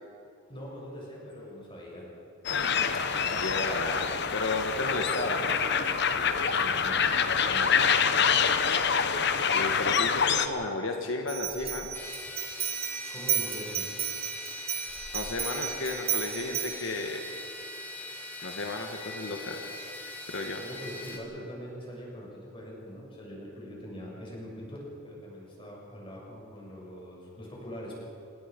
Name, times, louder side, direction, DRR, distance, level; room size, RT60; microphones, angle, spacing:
voice 1, 0.5-2.2 6.1-7.1 7.3-8.0 13.1-14.1 20.6-28.0, equal, 25° left, -3 dB, 7.0 m, -42 dB
sound 1, 2.4-10.5, left 6 dB, 55° left, 1.1 m, -26 dB
voice 2, 3.3-5.6 7.6-7.7 9.5-11.9 15.1-17.2 18.0-18.1 18.4-19.7 20.3-20.6, left 2 dB, 80° left, 3 dB, 1.7 m, -33 dB
sound 2, 11.3-16.9, right 9 dB, 30° right, 2.8 m, -33 dB
sound 3, 11.9-21.2, left 1 dB, 10° left, 2.6 m, -42 dB
27.0 x 19.5 x 5.4 m, 2.8 s
head